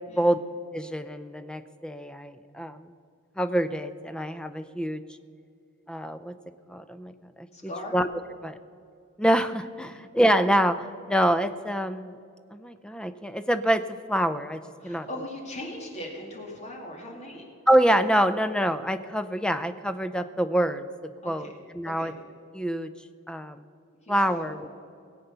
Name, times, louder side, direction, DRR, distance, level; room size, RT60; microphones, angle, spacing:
voice 1, 0.7-2.9 3.4-5.0 5.9-6.3 6.7-8.1 8.4-8.6 9.2-12.2 12.5-15.1 17.7-20.9 21.2-21.5 21.7-22.1 22.5-22.9 23.3-23.6 24.1-24.8, equal, 5° left, 10 dB, 0.5 m, -26 dB
voice 2, 7.5-7.9 9.9-10.0 14.8-17.5 21.2-21.6 21.9-22.1 24.0-24.8, left 1 dB, 30° left, 0 dB, 2.3 m, -39 dB
19.5 x 8.2 x 6.8 m, 2.4 s
head